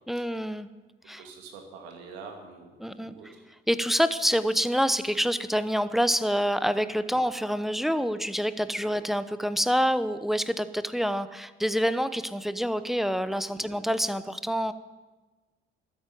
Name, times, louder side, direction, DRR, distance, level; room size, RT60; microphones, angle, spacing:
voice 1, 0.1-0.7 1.1-1.2 2.8-3.3 3.7-14.7, equal, ahead, 13 dB, 0.9 m, -27 dB
voice 2, 1.2-3.4 7.1-7.2 8.8-9.0 13.5-13.7, right 5 dB, 75° right, 3 dB, 2.5 m, -46 dB
13.0 x 9.5 x 9.6 m, 1.2 s
figure-of-eight pair, 45°, 31 cm